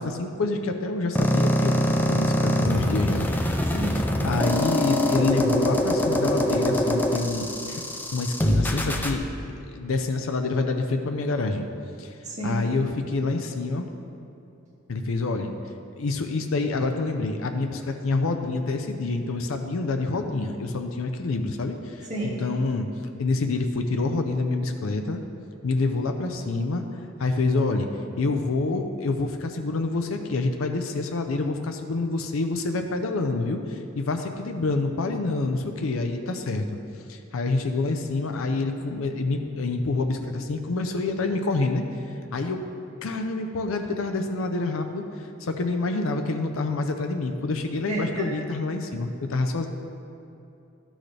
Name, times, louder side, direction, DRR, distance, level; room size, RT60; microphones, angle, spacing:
voice 1, 0.0-7.8 8.1-9.2 9.7-11.7 12.0-12.1 12.4-13.9 14.9-15.6 16.0-22.9 23.2-25.2 25.6-26.8 27.2-27.9 28.2-36.8 37.1-42.6 43.0-49.7, left 3 dB, 90° left, 5 dB, 0.5 m, -27 dB
sound 1, 1.2-9.2, equal, 10° left, 0.4 m, -24 dB
voice 2, 12.3-12.6 22.1-22.4 47.9-48.3, right 2 dB, 35° right, -6 dB, 2.0 m, -30 dB
12.0 x 6.3 x 3.3 m, 2.7 s
head